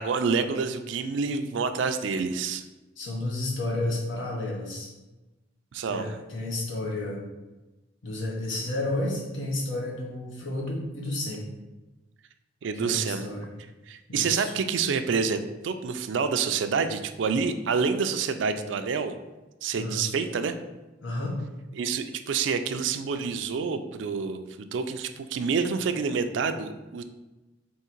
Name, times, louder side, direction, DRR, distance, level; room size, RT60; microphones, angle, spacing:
voice 1, 0.0-2.6 5.7-6.1 12.6-13.3 13.9-19.1 19.6-20.6 21.8-27.0, right 5 dB, 75° right, 9 dB, 0.4 m, -28 dB
voice 2, 3.0-4.9 5.9-7.2 8.0-11.5 12.7-13.5 14.1-14.5 19.7-20.0 21.0-21.4, left 2 dB, 85° left, -3 dB, 0.9 m, -31 dB
3.6 x 3.1 x 4.4 m, 1.1 s
head